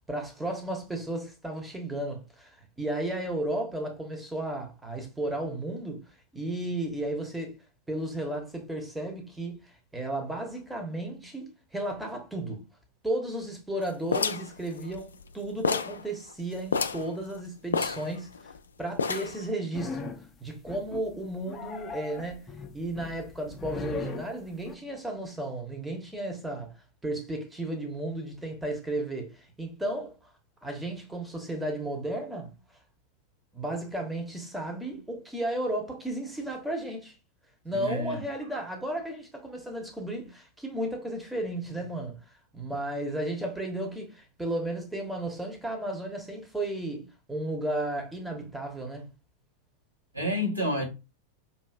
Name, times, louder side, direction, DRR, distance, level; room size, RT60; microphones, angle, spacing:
voice 1, 0.1-6.0 6.3-7.6 7.9-12.6 13.0-18.5 18.8-20.1 20.4-26.8 27.0-30.1 30.6-32.5 33.5-37.1 37.6-42.2 42.5-49.1, right 1 dB, 5° right, 1.0 m, -34 dB
sound 1, 14.1-15.3 15.6-16.0 16.3-16.4 16.7-17.1 17.7-18.6 19.0-19.5, left 5 dB, 70° left, 0.3 m, -29 dB
sound 2, 19.7-20.3 20.7-21.1 21.5-24.8, left 5 dB, 25° left, 0.6 m, -39 dB
voice 2, 37.7-38.2 50.1-50.8, left 1 dB, 85° right, 1.4 m, -29 dB
5.5 x 2.7 x 2.4 m
figure-of-eight pair, 90°, 0 cm